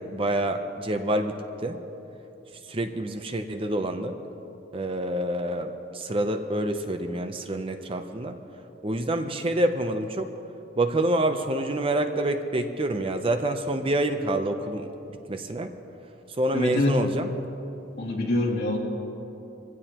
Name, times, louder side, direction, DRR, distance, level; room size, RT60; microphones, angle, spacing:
voice 1, 0.0-1.8 2.7-4.2 4.7-8.4 8.8-10.3 10.8-15.7 16.4-17.3, right 1 dB, 30° right, 7 dB, 0.6 m, -27 dB
voice 2, 16.5-17.0 18.0-18.8, left 2 dB, 55° left, -3 dB, 2.6 m, -24 dB
23.0 x 15.5 x 3.0 m, 3.0 s
head